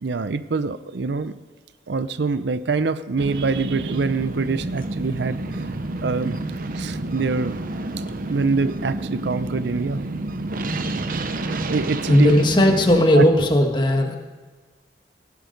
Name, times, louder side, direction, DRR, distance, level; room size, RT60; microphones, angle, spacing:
voice 1, 0.0-1.4 1.9-5.6 6.0-6.4 6.8-7.6 8.3-10.0 11.7-12.4 13.1-13.2, right 4 dB, 65° right, 13 dB, 0.5 m, -24 dB
sound 1, 3.2-13.0, right 2 dB, 50° right, 0.8 m, -29 dB
voice 2, 12.1-14.2, equal, 25° left, 3 dB, 1.5 m, -16 dB
17.5 x 9.4 x 5.2 m, 1.4 s
head